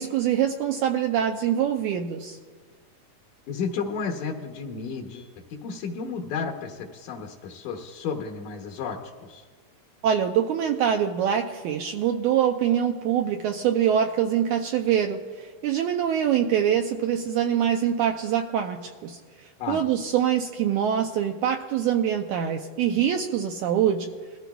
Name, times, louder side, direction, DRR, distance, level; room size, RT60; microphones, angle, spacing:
voice 1, 0.0-2.4 10.0-24.1, right 9 dB, 80° right, 4 dB, 1.8 m, -24 dB
voice 2, 3.5-5.3 5.6-9.5 19.6-19.8, left 5 dB, 70° left, 1 dB, 2.2 m, -32 dB
22.0 x 14.0 x 2.3 m, 1.5 s
omnidirectional pair, 3.9 m